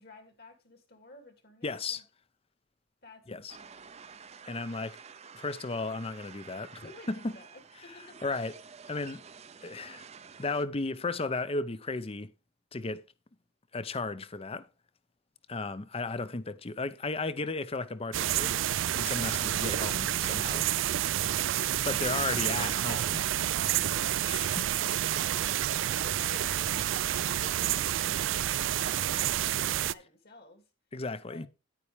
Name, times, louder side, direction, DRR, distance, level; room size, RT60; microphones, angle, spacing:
voice 1, 0.0-2.0 3.0-3.9 6.8-8.3 19.0-19.2 23.6-30.7 31.3-31.4, left 2 dB, 55° left, 2.5 m, -54 dB
voice 2, 1.6-2.0 3.3-3.6 4.5-5.0 5.3-6.8 7.1-7.3 8.2-8.5 8.9-9.2 9.6-10.1 10.4-12.3 12.7-13.0 13.7-14.7 15.5-18.5 18.9-20.7 21.8-23.2 24.2-24.7 30.9-31.5, left 3 dB, 30° left, 0.6 m, -34 dB
sound 1, 3.5-10.7, right 6 dB, 35° right, 0.6 m, -50 dB
sound 2, 18.1-29.9, right 12 dB, 75° right, 0.4 m, -29 dB
9.8 x 9.2 x 3.4 m
head